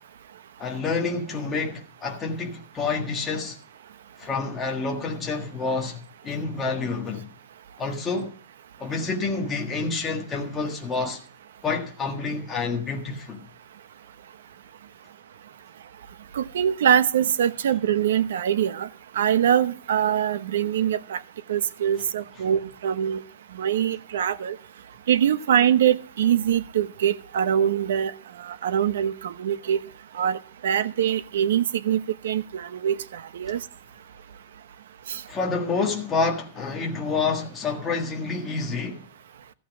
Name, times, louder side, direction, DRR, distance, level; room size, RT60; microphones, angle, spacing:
voice 1, 0.6-3.6 4.2-7.3 7.8-8.4 8.8-11.2 11.6-13.4 35.3-39.0, left 4 dB, 10° left, 1.6 m, -28 dB
voice 2, 16.3-18.9 19.1-21.2 21.5-23.2 23.5-24.6 25.1-28.1 28.4-29.8 30.1-33.6 35.1-35.2, right 9 dB, 80° right, 0.9 m, -23 dB
14.5 x 8.6 x 6.1 m
supercardioid pair, 180°, 0 cm